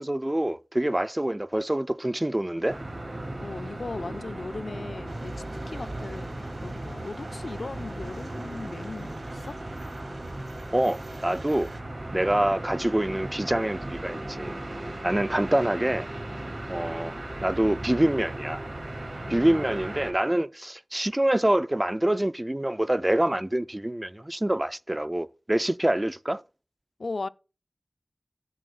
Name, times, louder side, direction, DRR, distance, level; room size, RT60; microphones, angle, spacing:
voice 1, 0.0-2.8 10.7-11.7 12.1-14.5 15.0-16.1 16.7-17.2 17.4-18.6 19.3-26.4, right 1 dB, 25° right, 0.4 m, -26 dB
sound 1, 2.7-20.1, right 1 dB, 55° right, 2.5 m, -37 dB
voice 2, 3.4-5.3 5.7-9.6 19.3-19.7 27.0-27.3, left 3 dB, 90° left, 0.3 m, -37 dB
sound 2, 5.1-11.8, right 2 dB, 80° right, 1.3 m, -46 dB
15.5 x 6.3 x 2.4 m
wide cardioid pair, 50°, 0 cm